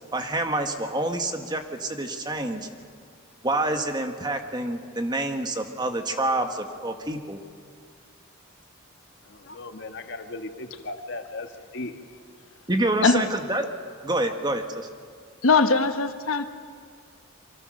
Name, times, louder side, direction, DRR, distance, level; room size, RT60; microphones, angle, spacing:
voice 1, 0.1-2.7 3.4-7.4 12.7-13.6 14.0-14.9, right 2 dB, 20° right, 5 dB, 1.6 m, -27 dB
voice 2, 9.3-11.9, left 2 dB, 55° left, 6 dB, 1.6 m, -37 dB
voice 3, 15.4-16.5, left 4 dB, 85° left, 8 dB, 1.2 m, -20 dB
28.5 x 24.5 x 6.5 m, 2.1 s
head